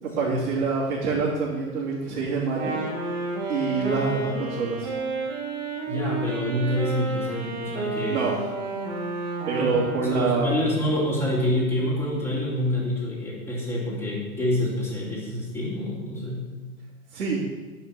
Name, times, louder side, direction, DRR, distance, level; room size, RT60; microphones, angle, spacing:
voice 1, 0.0-2.7 3.5-4.9 8.1-8.4 9.5-10.5 17.1-17.4, right 4 dB, 80° right, -8 dB, 3.5 m, -26 dB
Wind instrument woodwind instrument, 2.4-10.4, right 3 dB, 25° right, 3.6 m, -31 dB
voice 2, 5.9-8.2 9.6-9.8 10.0-16.4, left 1 dB, 5° left, -5 dB, 2.8 m, -27 dB
10.0 x 5.7 x 7.3 m, 1.3 s
hypercardioid pair, 145°, 44 cm